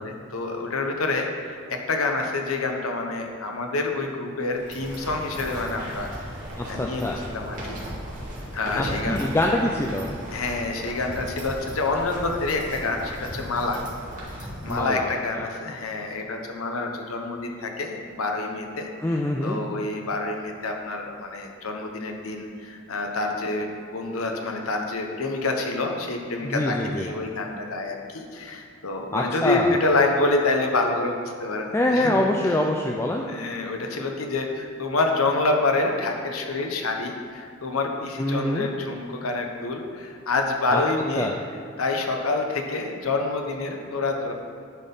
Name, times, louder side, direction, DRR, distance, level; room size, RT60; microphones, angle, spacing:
voice 1, 0.0-6.1 6.7-7.8 8.5-9.2 10.3-13.8 14.3-18.9 19.4-32.5 33.3-41.3 41.8-44.3, left 3 dB, 85° left, 3 dB, 1.0 m, -27 dB
sound 1, 4.5-14.8, equal, 40° right, 2.0 m, -36 dB
voice 2, 6.6-7.2 8.7-10.1 14.7-15.1 19.0-19.6 26.4-27.1 29.1-29.7 31.7-33.3 38.2-38.7 40.7-40.8 41.2-41.3, left 1 dB, 10° left, 0 dB, 0.4 m, -24 dB
10.5 x 4.4 x 5.4 m, 2.3 s
head